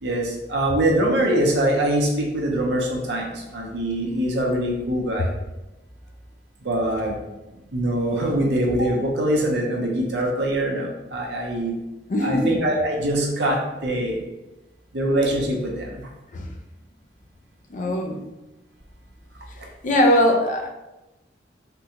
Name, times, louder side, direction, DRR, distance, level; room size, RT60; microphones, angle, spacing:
voice 1, 0.0-5.3 6.6-7.2 7.7-11.8 12.2-14.3 14.9-16.1 19.6-19.7, right 1 dB, 70° right, 0 dB, 0.7 m, -23 dB
voice 2, 12.1-12.5 16.3-16.6 17.7-18.2 19.5-20.7, left 1 dB, 45° left, 2 dB, 0.4 m, -21 dB
3.6 x 2.2 x 2.9 m, 1.0 s
head